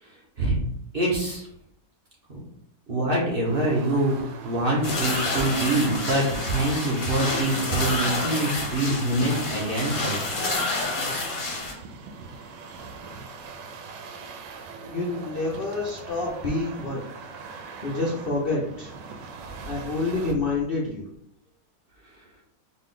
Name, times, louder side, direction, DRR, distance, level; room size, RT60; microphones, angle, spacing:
voice 1, 0.0-0.7 0.9-1.5 2.3-2.4 2.9-10.2, right 1 dB, 40° right, -4 dB, 1.0 m, -25 dB
sound 1, 3.4-20.3, right 4 dB, 85° right, 1.3 m, -41 dB
sound 2, 4.8-11.7, left 2 dB, 40° left, 0.8 m, -29 dB
voice 2, 14.9-17.0 17.8-18.9 19.7-21.1, left 3 dB, 75° left, -3 dB, 0.5 m, -28 dB
4.1 x 2.5 x 3.8 m, 0.76 s
omnidirectional pair, 1.9 m